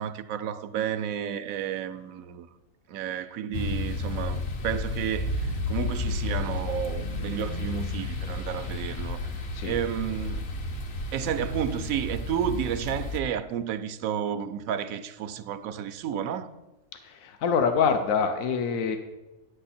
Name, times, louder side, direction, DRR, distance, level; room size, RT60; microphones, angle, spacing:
voice 1, 0.0-2.5 2.9-9.2 9.6-10.4 11.1-16.5, right 9 dB, 90° right, 1.0 m, -31 dB
sound 1, 3.5-13.2, left 2 dB, 55° left, 1.0 m, -32 dB
voice 2, 16.9-19.0, left 6 dB, 80° left, 1.1 m, -25 dB
10.0 x 7.9 x 4.2 m
omnidirectional pair, 1.4 m